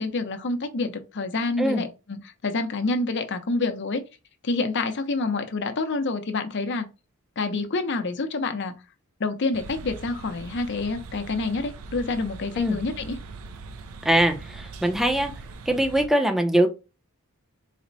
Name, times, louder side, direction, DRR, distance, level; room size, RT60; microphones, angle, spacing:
voice 1, 0.0-4.0 4.4-6.9 7.4-8.7 9.2-13.2, left 3 dB, 55° left, 0.6 m, -27 dB
sound 1, 9.5-16.1, right 3 dB, 75° right, 0.4 m, -41 dB
voice 2, 14.0-15.3 15.7-16.7, right 1 dB, ahead, 0.5 m, -22 dB
4.1 x 2.1 x 3.9 m
head